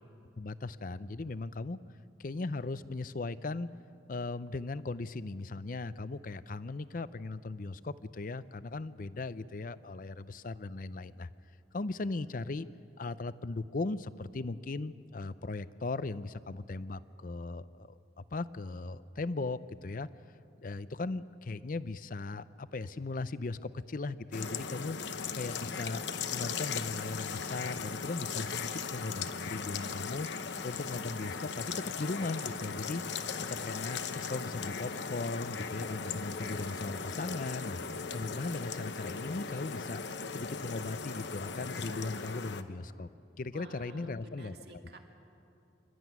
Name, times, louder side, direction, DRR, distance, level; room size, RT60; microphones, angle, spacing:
voice 1, 0.4-1.8 2.2-3.7 4.1-11.3 11.7-12.7 13.0-20.1 20.6-25.0 25.3-26.0 26.3-30.3 30.6-33.0 33.5-37.8 38.1-40.0 40.3-43.1 43.4-44.8, left 3 dB, 50° left, 15 dB, 0.6 m, -38 dB
sound 1, 24.3-42.6, left 5 dB, 80° left, 0.9 m, -38 dB
voice 2, 43.5-45.0, right 1 dB, 60° right, 3 dB, 2.2 m, -50 dB
27.5 x 12.5 x 9.4 m, 2.7 s
head